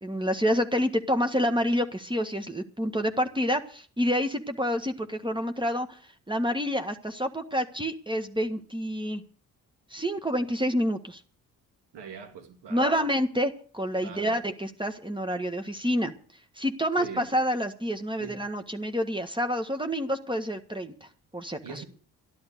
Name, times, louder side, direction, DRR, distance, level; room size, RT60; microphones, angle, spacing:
voice 1, 0.0-6.0 6.3-9.2 9.9-11.2 12.7-16.1 16.6-21.8, equal, 10° right, 1.6 m, -28 dB
voice 2, 11.9-13.0 13.9-14.4 17.0-17.3 18.2-18.4 21.6-21.8, right 6 dB, 75° right, 2.9 m, -42 dB
13.0 x 11.5 x 6.8 m
hypercardioid pair, 45°, 42 cm